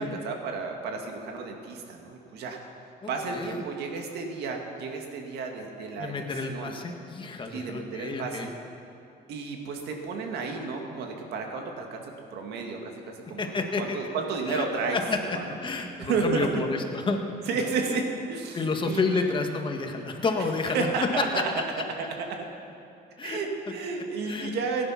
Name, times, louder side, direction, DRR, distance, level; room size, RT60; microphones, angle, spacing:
voice 1, 0.0-2.6 3.1-6.2 6.5-6.7 7.5-8.5 9.3-12.0 12.3-13.5 13.8-15.0 15.3-15.5 16.0-16.5 17.5-18.6 18.8-19.2 20.7-21.5 22.0-22.5 23.2-24.9, right 4 dB, 75° right, 2 dB, 2.1 m, -32 dB
voice 2, 3.0-3.6 6.0-8.5 13.4-14.0 14.5-14.6 14.9-15.2 15.6-17.2 17.8-18.0 18.5-20.9 23.2-23.4 23.7-23.8 24.2-24.5, left 3 dB, 30° left, 3 dB, 1.6 m, -30 dB
17.5 x 10.0 x 5.8 m, 2.6 s
cardioid pair, 110°, 17 cm